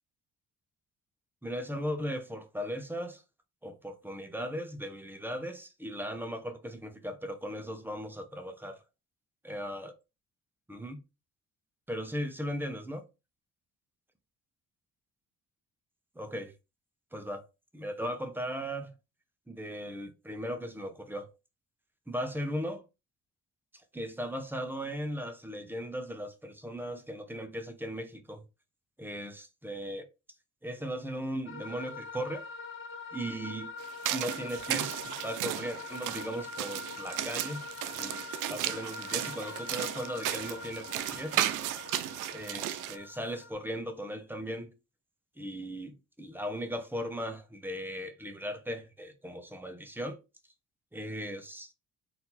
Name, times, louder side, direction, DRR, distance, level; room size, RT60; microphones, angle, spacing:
voice 1, 1.4-3.2 3.6-8.8 9.4-9.9 10.7-11.0 11.9-13.0 16.2-16.5 17.1-17.4 17.7-18.9 19.5-21.3 22.1-22.8 23.9-28.4 29.0-30.1 30.6-32.4 33.1-33.7 34.1-37.6 37.9-41.6 42.3-44.7 45.4-50.2 50.9-51.7, equal, 5° right, 0.9 m, -37 dB
sound 1, 31.5-43.5, left 4 dB, 40° left, 1.4 m, -44 dB
sound 2, 33.8-43.0, right 13 dB, 90° right, 0.5 m, -35 dB
4.2 x 2.8 x 4.1 m
cardioid pair, 90°, 30 cm